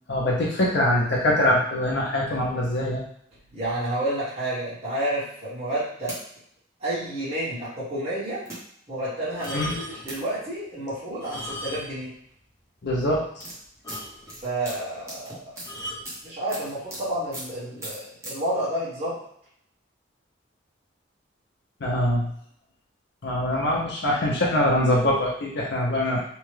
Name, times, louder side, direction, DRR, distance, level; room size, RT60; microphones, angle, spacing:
voice 1, 0.1-3.0 9.5-9.7 12.8-13.4 21.8-22.3 23.2-26.2, left 1 dB, 65° left, -3 dB, 0.6 m, -23 dB
voice 2, 3.5-6.2 6.8-8.4 8.9-12.1 14.4-15.5 16.2-19.2, right 1 dB, 35° right, -11 dB, 1.3 m, -30 dB
sound 1, 5.7-6.2 7.1-7.2 8.4-8.6 9.4-9.5 10.1-10.2 11.7-11.8 12.0-12.3 13.0-17.0 17.3-17.5 17.8-18.3, right 1 dB, 15° right, 0.9 m, -39 dB
sound 2, 9.3-10.2 11.1-12.1 12.4-12.5 13.0-13.1 13.4-13.5 13.8-14.5 15.6-16.1 17.0-17.2, left 1 dB, 20° left, 0.8 m, -37 dB
2.8 x 2.3 x 3.2 m, 0.69 s
head